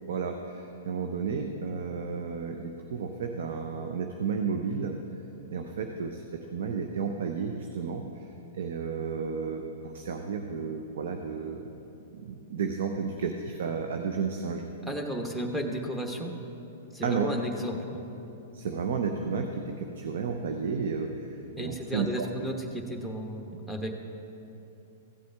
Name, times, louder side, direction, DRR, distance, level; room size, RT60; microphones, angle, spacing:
voice 1, 0.1-5.0 5.5-6.2 6.5-8.0 8.5-11.7 12.1-14.7 17.0-17.3 18.5-22.3, right 5 dB, 65° right, 4 dB, 0.6 m, -32 dB
voice 2, 14.9-16.3 16.9-18.0 21.6-23.9, equal, 5° right, 2 dB, 1.1 m, -33 dB
15.0 x 7.7 x 3.5 m, 2.9 s
hypercardioid pair, 110°, 0 cm